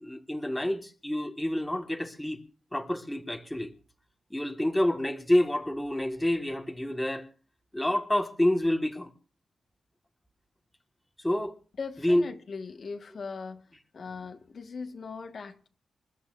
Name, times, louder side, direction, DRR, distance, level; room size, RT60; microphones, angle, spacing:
voice 1, 0.0-2.4 2.7-3.7 4.3-7.2 7.7-9.1 11.2-11.6 12.0-12.2, left 1 dB, 10° left, 1.6 m, -28 dB
voice 2, 11.8-13.6 13.9-15.7, left 5 dB, 55° left, 1.6 m, -39 dB
27.5 x 14.0 x 2.6 m
wide cardioid pair, 105°, 0 cm